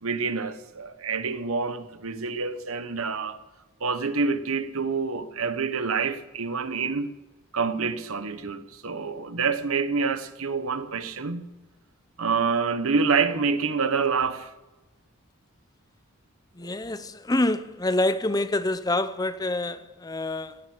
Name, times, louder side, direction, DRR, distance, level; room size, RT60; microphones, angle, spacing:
voice 1, 0.0-3.4 3.8-7.1 7.5-11.5 12.2-14.5, right 5 dB, 75° right, 1.1 m, -27 dB
voice 2, 16.5-20.6, left 2 dB, 15° left, 0.6 m, -26 dB
17.0 x 9.5 x 8.8 m
head